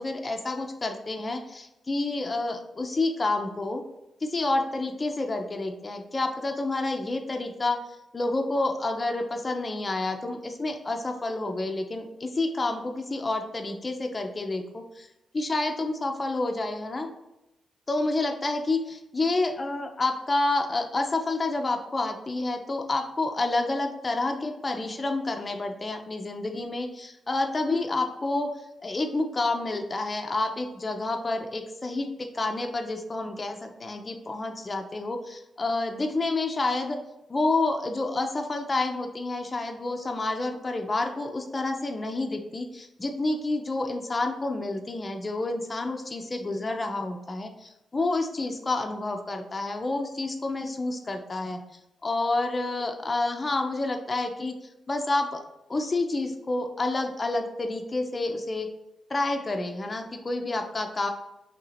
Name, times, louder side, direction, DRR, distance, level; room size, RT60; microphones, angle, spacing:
voice 1, 0.0-3.8 4.2-7.8 8.1-15.1 15.3-17.1 17.9-37.0 37.3-51.6 52.0-54.5 54.9-55.4 55.7-58.7 59.1-61.1, left 2 dB, 35° left, 4 dB, 0.5 m, -29 dB
2.9 x 2.8 x 4.0 m, 0.90 s
cardioid pair, 70°, 0 cm